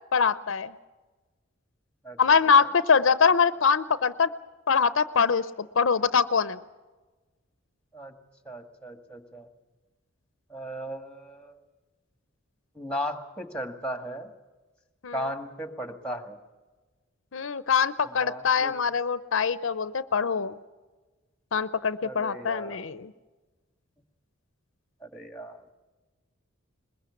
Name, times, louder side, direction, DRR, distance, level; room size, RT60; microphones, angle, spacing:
voice 1, 0.1-0.7 2.2-4.3 4.7-6.6 15.0-15.2 17.3-20.6 21.5-23.1, left 6 dB, 70° left, 14 dB, 0.6 m, -23 dB
voice 2, 8.5-9.5 10.5-11.6 12.8-14.3 15.1-16.4 18.1-18.7 22.0-22.9 25.0-25.6, equal, 5° left, 6 dB, 1.8 m, -36 dB
21.5 x 21.5 x 7.1 m, 1.2 s
head